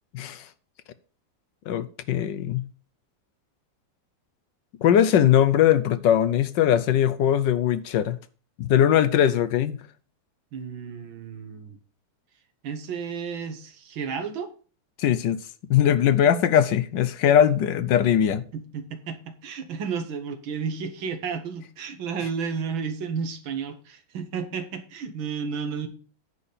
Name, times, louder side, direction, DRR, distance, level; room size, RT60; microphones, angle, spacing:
voice 1, 0.1-0.5 1.7-2.7 4.8-8.2 8.6-9.8 15.0-15.4 15.7-18.4, left 10 dB, 75° left, 1.3 m, -20 dB
voice 2, 10.5-11.8 12.6-14.5 18.5-25.9, right 6 dB, 85° right, 2.0 m, -32 dB
10.0 x 4.3 x 6.8 m
omnidirectional pair, 2.1 m